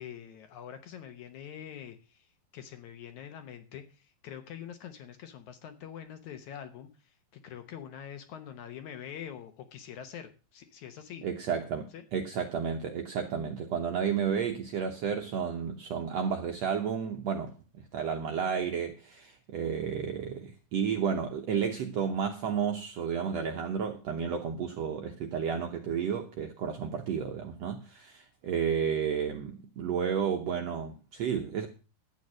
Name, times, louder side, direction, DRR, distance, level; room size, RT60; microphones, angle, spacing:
voice 1, 0.0-11.3 11.9-12.0, left 9 dB, 65° left, 2.1 m, -45 dB
voice 2, 11.2-31.7, right 7 dB, 70° right, 1.6 m, -32 dB
11.5 x 8.3 x 6.3 m
omnidirectional pair, 4.1 m